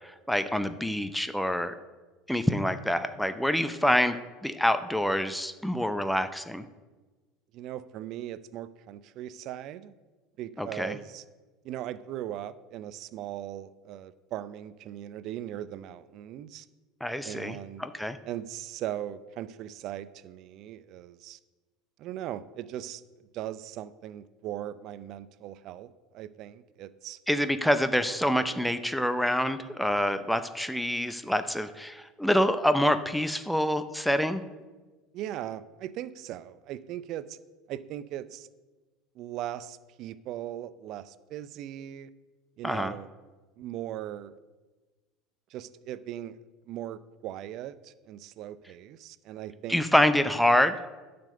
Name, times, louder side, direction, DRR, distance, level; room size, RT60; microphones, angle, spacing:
voice 1, 0.0-1.7 2.3-6.6 10.6-11.0 17.0-18.2 27.3-34.4 42.6-42.9 49.7-50.8, equal, ahead, 10 dB, 0.6 m, -26 dB
voice 2, 7.5-9.9 10.4-11.2 11.6-16.7 17.2-17.8 18.3-21.4 22.0-23.0 23.3-27.2 35.1-37.4 37.7-38.5 39.2-42.1 42.6-43.1 43.6-44.4 45.5-46.4 46.7-49.8, right 12 dB, 55° right, 16 dB, 0.5 m, -39 dB
10.5 x 5.2 x 6.7 m, 1.3 s
hypercardioid pair, 75°, 0 cm